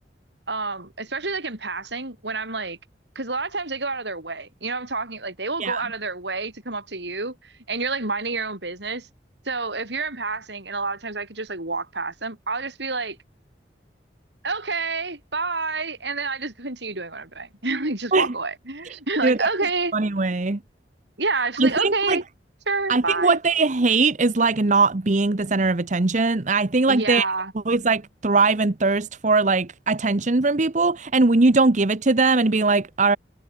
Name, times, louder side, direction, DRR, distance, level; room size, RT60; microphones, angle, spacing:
voice 1, 0.5-2.8 3.1-9.1 9.4-13.2 14.4-20.1 21.2-22.2 22.7-23.4 26.9-27.5, right 3 dB, 75° right, 7.8 m, -28 dB
voice 2, 19.9-20.6 21.6-22.2 22.9-27.3 27.7-33.2, right 3 dB, 40° right, 0.9 m, -20 dB
head